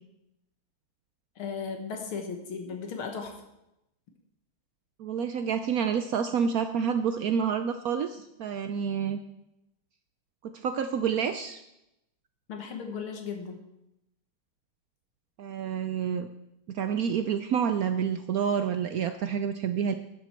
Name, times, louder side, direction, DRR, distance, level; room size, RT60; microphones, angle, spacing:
voice 1, 1.4-3.3 12.5-13.6, left 5 dB, 80° left, 4 dB, 2.3 m, -36 dB
voice 2, 5.0-9.2 10.4-11.6 15.4-16.3 16.7-19.9, right 7 dB, 90° right, 8 dB, 0.7 m, -28 dB
13.0 x 10.5 x 4.4 m, 0.87 s
omnidirectional pair, 2.3 m